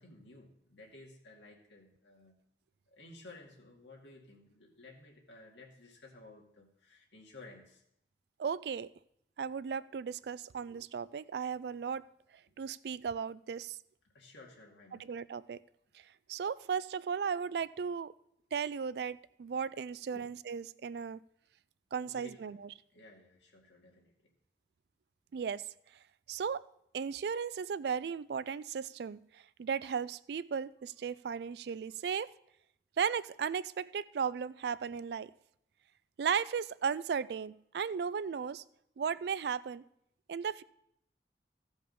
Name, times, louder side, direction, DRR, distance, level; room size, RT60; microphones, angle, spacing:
voice 1, 0.0-2.3 2.9-7.8 14.1-15.1 20.1-20.3 22.0-22.6 22.9-24.3, left 2 dB, 85° left, -1 dB, 2.2 m, -55 dB
voice 2, 8.4-8.9 9.4-12.0 12.6-13.8 15.0-15.6 16.3-18.1 18.5-21.2 21.9-22.7 25.3-25.6 26.3-26.6 26.9-32.3 33.0-35.3 36.2-38.6 39.0-39.8 40.3-40.6, right 6 dB, 65° right, 18 dB, 0.3 m, -36 dB
15.5 x 5.3 x 5.4 m, 0.75 s
head